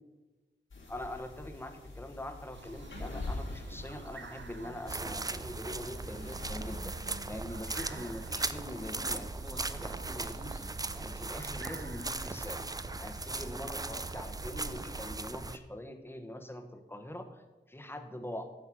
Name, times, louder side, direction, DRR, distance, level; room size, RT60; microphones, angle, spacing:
sound 1, 0.7-9.2, left 2 dB, 90° left, 2.5 m, -46 dB
voice 1, 0.9-12.7 13.0-18.5, left 1 dB, 10° left, 6 dB, 1.0 m, -43 dB
sound 2, 2.5-15.2, right 4 dB, 70° right, 0.9 m, -49 dB
sound 3, 4.9-15.6, right 3 dB, 20° right, 0.4 m, -38 dB
9.4 x 6.5 x 6.1 m, 1.2 s
wide cardioid pair, 90°, 19 cm